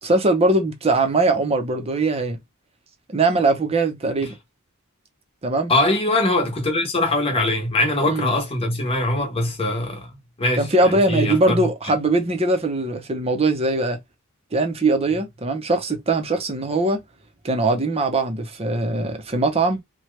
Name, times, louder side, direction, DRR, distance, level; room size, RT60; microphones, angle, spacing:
voice 1, 0.0-2.4 3.1-4.3 5.4-5.7 8.0-8.3 10.6-14.0 14.5-17.0 17.4-19.8, right 2 dB, 30° right, 0.7 m, -21 dB
voice 2, 5.7-10.1 10.4-11.7, left 2 dB, 25° left, 1.0 m, -22 dB
2.9 x 2.2 x 3.2 m
head